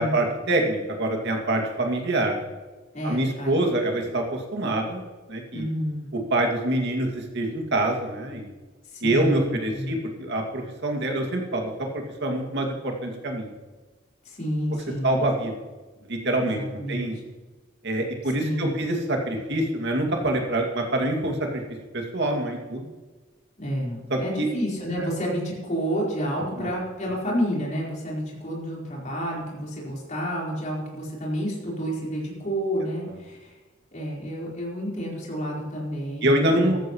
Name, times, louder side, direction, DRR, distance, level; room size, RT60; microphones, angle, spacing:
voice 1, 0.0-2.4 3.0-5.0 5.3-5.7 6.3-8.5 9.0-13.5 15.0-15.5 16.1-17.2 17.8-21.6 21.9-22.9 24.1-24.5 25.0-25.1 26.6-26.7 36.2-36.8, right 1 dB, 60° right, 2 dB, 2.4 m, -25 dB
voice 2, 2.9-3.7 5.5-6.1 8.9-9.9 14.2-15.3 16.4-17.1 18.4-18.7 23.6-33.5 33.9-36.8, equal, 40° left, -4 dB, 4.4 m, -30 dB
14.0 x 14.0 x 3.2 m, 1.2 s
head